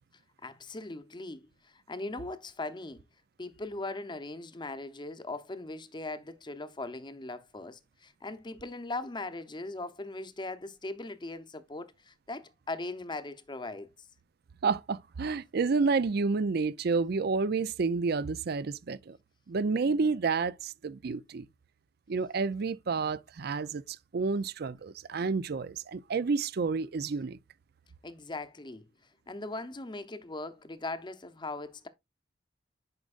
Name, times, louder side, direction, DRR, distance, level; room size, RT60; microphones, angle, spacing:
voice 1, 0.4-3.0 3.4-13.9 28.0-28.8 29.3-31.9, left 2 dB, 25° left, 0.7 m, -39 dB
voice 2, 14.6-19.2 19.5-21.5 22.1-27.4, right 4 dB, 60° right, 0.5 m, -30 dB
9.7 x 5.2 x 2.4 m
head